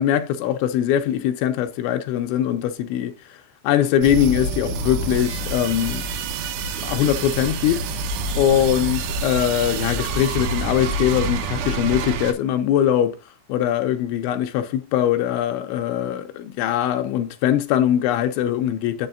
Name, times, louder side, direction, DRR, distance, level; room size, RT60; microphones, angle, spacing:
voice 1, 0.0-3.4 3.6-6.0 6.8-7.9 8.4-13.2 13.5-19.1, left 10 dB, 80° left, 3.0 m, -22 dB
sound 1, 4.0-12.3, right 3 dB, 80° right, 3.5 m, -27 dB
7.7 x 7.7 x 2.5 m
omnidirectional pair, 5.5 m